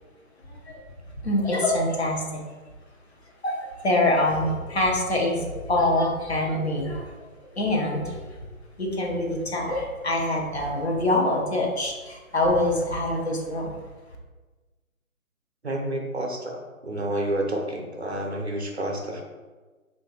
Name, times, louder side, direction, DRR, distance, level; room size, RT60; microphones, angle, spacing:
voice 1, 1.2-2.2 3.4-7.0 7.6-8.1 8.8-13.7, left 1 dB, 50° left, -1 dB, 0.7 m, -24 dB
voice 2, 15.6-16.6 16.8-19.2, right 1 dB, 50° right, 1 dB, 0.5 m, -29 dB
2.7 x 2.5 x 3.7 m, 1.3 s
figure-of-eight pair, 150°, 43 cm